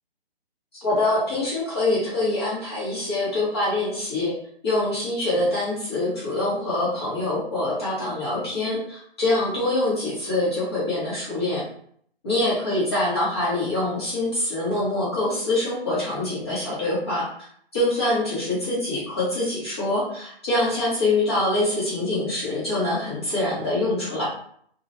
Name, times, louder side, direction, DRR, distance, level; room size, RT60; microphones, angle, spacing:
voice 1, 0.7-4.3 4.6-11.6 12.2-24.3, left 2 dB, 25° left, -8 dB, 0.8 m, -25 dB
2.3 x 2.1 x 2.5 m, 0.63 s
hypercardioid pair, 165°, 31 cm